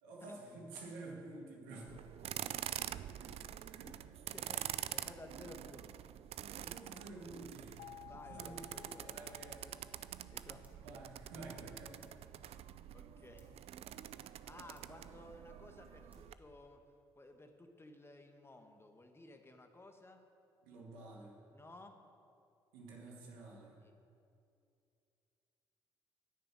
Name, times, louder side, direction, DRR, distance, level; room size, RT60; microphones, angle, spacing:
voice 1, 0.0-1.9 3.2-4.0 6.5-7.8 8.2-9.7 10.8-12.1 20.6-21.3 22.7-23.8, right 2 dB, 80° right, -1 dB, 2.1 m, -51 dB
sound 1, 1.9-16.3, right 11 dB, 55° right, 0.4 m, -46 dB
voice 2, 4.3-6.1 8.0-9.9 10.3-10.8 12.4-12.6 12.9-13.5 14.5-16.8 17.1-20.2 21.5-22.0 23.8-24.0, left 2 dB, 20° left, 5 dB, 1.6 m, -56 dB
sound 2, 7.8-10.7, left 11 dB, 60° left, 0.4 m, -56 dB
sound 3, 9.5-16.6, right 1 dB, 15° right, 2.4 m, -67 dB
9.8 x 6.7 x 8.8 m, 2.5 s
hypercardioid pair, 50°, 12 cm